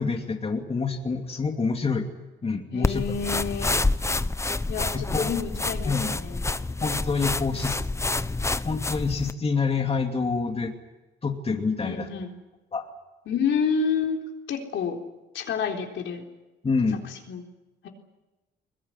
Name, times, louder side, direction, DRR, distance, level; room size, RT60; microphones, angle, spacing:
voice 1, 0.0-2.1 2.4-3.0 4.9-5.3 5.8-6.2 6.8-7.8 8.6-10.7 11.2-12.1 12.7-12.9 16.6-17.0, left 4 dB, 30° left, 3 dB, 2.7 m, -27 dB
voice 2, 2.7-3.7 4.7-6.4 11.8-12.3 13.3-14.2 14.5-15.0 15.3-16.2 17.3-17.4, left 6 dB, 75° left, 2 dB, 3.9 m, -29 dB
sound 1, 2.8-9.3, left 2 dB, 15° left, 0.8 m, -28 dB
22.0 x 21.0 x 9.9 m, 1.1 s
cardioid pair, 90°, 20 cm